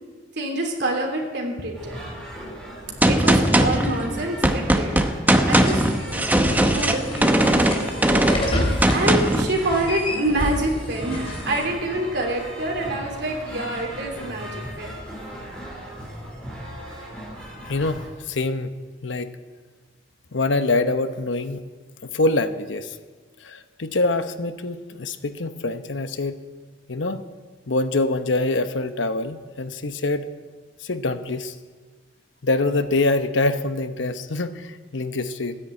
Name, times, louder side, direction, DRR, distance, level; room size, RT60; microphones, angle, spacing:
voice 1, 0.3-2.0 3.1-5.0 5.5-8.6 8.9-15.0, right 1 dB, 60° right, 0 dB, 3.1 m, -27 dB
sound 1, 1.7-18.1, equal, 5° left, 4.0 m, -37 dB
Gunshot gunfire, 3.0-9.5, right 1 dB, 10° right, 0.8 m, -19 dB
sound 2, 5.5-11.6, left 1 dB, 30° left, 2.9 m, -29 dB
voice 2, 17.7-18.7 19.0-19.4 20.3-21.6 22.0-23.0 23.4-26.4 26.9-27.2 27.7-30.3 30.8-31.5 32.4-35.6, left 2 dB, 80° left, 10 dB, 0.9 m, -25 dB
14.0 x 9.9 x 8.7 m, 1.4 s
head